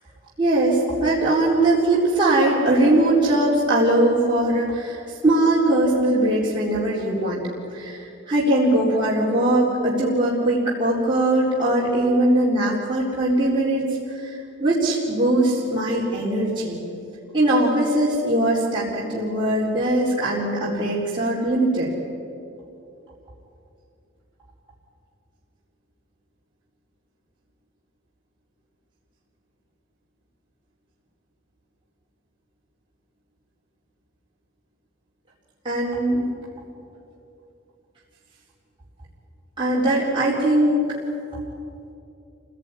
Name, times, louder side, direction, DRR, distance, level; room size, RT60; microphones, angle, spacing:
voice 1, 0.4-7.4 7.7-13.8 14.1-16.8 17.3-21.9 35.6-36.2 39.6-40.8, right 1 dB, 25° right, -7 dB, 3.9 m, -21 dB
28.0 x 18.0 x 9.8 m, 2.7 s
head